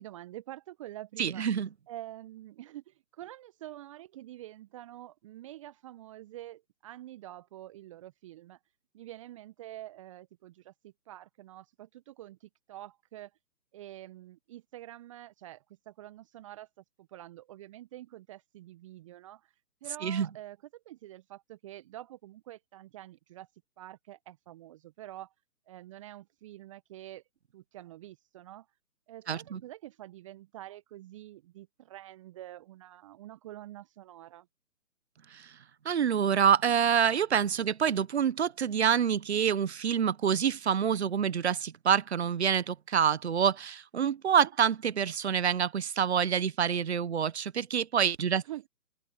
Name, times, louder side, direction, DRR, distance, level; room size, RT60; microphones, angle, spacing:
voice 1, 0.0-1.4 1.9-8.6 8.9-13.3 13.7-16.7 17.0-19.5 19.8-20.6 20.8-23.5 23.8-25.3 25.7-27.2 27.5-28.7 29.1-34.5 44.4-44.5 48.5-48.7, right 14 dB, 20° right, 1.2 m, -47 dB
voice 2, 1.2-1.7 20.0-20.3 29.3-29.6 35.3-35.5 35.8-48.4, right 8 dB, 45° right, 1.4 m, -27 dB
open air
figure-of-eight pair, 140°, 45 cm